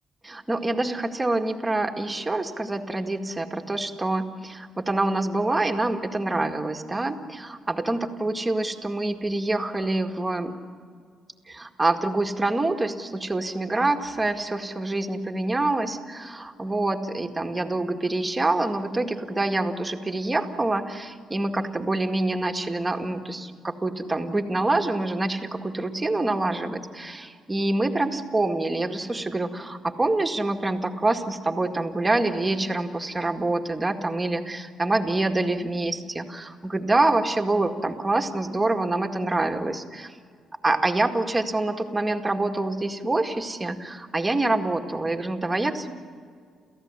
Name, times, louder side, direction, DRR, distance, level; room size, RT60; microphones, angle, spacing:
voice 1, 0.2-10.5 11.5-40.1 40.6-45.9, right 2 dB, 15° right, 4 dB, 2.0 m, -26 dB
29.5 x 15.0 x 9.9 m, 2.1 s
cardioid pair, 90°, 0 cm